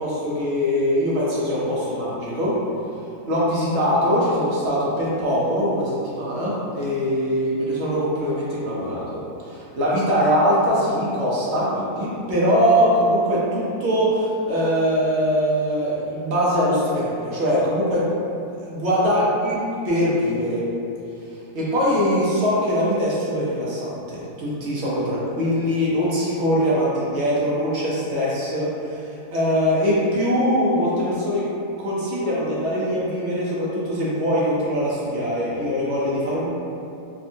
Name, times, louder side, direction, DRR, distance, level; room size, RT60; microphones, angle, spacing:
voice 1, 0.0-2.5 3.3-18.1 18.7-19.6 19.8-20.6 21.5-31.4 31.8-36.5, equal, 65° right, -7 dB, 0.6 m, -22 dB
3.5 x 2.1 x 2.6 m, 2.7 s
omnidirectional pair, 1.7 m